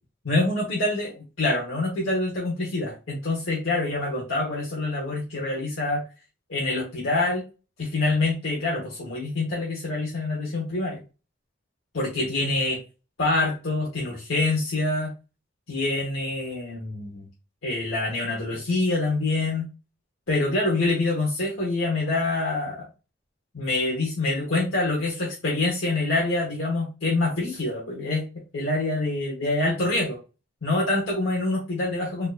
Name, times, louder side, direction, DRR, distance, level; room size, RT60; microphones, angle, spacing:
voice 1, 0.2-1.1 1.4-6.0 6.5-7.4 7.8-11.0 11.9-12.8 13.2-15.1 15.7-17.3 17.6-19.6 20.3-22.9 23.5-28.2 28.5-30.2 30.6-32.3, left 2 dB, 80° left, -4 dB, 1.1 m, -26 dB
4.4 x 2.6 x 2.4 m, 0.31 s
head